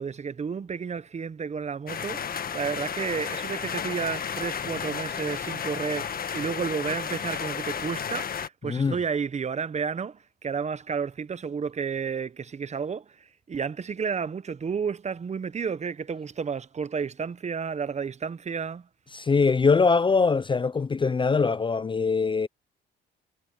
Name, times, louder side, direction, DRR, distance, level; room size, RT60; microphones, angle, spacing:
voice 1, 0.0-18.9, right 6 dB, 35° right, 0.9 m, -31 dB
sound 1, 1.9-8.5, left 7 dB, 45° left, 1.6 m, -33 dB
voice 2, 19.1-22.5, left 4 dB, 25° left, 0.5 m, -22 dB
cardioid pair, 90°, 20 cm